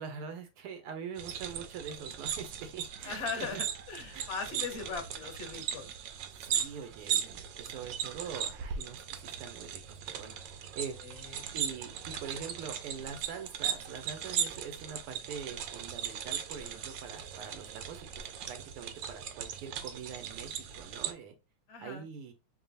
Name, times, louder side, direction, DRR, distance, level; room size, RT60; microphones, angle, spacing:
voice 1, 0.0-3.6 4.1-4.3 4.5-4.6 6.4-10.4 10.8-11.0 11.5-18.1 18.5-21.3 21.8-22.3, right 6 dB, 90° right, 7 dB, 1.8 m, -44 dB
sound 1, 1.2-21.1, right 8 dB, 75° right, 1.1 m, -38 dB
voice 2, 3.0-5.9 11.0-11.5 21.7-22.1, left 5 dB, 40° left, 3 dB, 1.1 m, -39 dB
5.2 x 2.3 x 2.6 m, 0.27 s
omnidirectional pair, 2.4 m